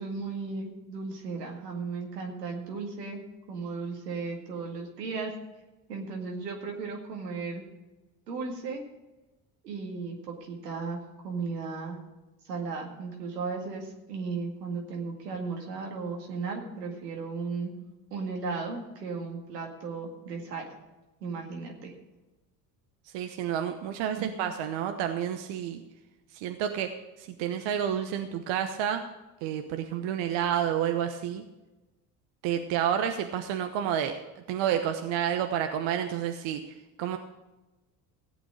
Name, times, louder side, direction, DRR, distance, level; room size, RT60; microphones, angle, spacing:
voice 1, 0.0-3.2 3.5-5.3 5.9-7.6 8.3-8.8 9.6-12.0 12.4-17.7 18.1-20.6 21.2-21.9 24.2-24.3, right 4 dB, 90° right, 1 dB, 2.1 m, -35 dB
voice 2, 23.0-25.8 26.3-26.9 27.2-29.0 29.4-31.4 32.4-34.2 34.5-37.2, right 9 dB, 65° right, 6 dB, 1.0 m, -30 dB
15.5 x 8.5 x 5.0 m, 1.1 s
hypercardioid pair, 60°, 47 cm